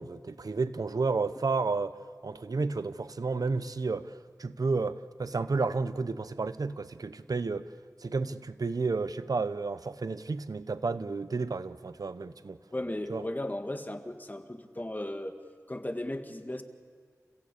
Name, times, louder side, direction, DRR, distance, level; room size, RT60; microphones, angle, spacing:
voice 1, 0.0-2.0 2.2-7.7 8.0-12.6 13.1-13.2, right 4 dB, 85° right, 0.8 m, -31 dB
voice 2, 12.7-15.3 15.7-16.6, left 1 dB, 30° left, 1.9 m, -36 dB
29.5 x 16.0 x 8.5 m
wide cardioid pair, 50°, 6 cm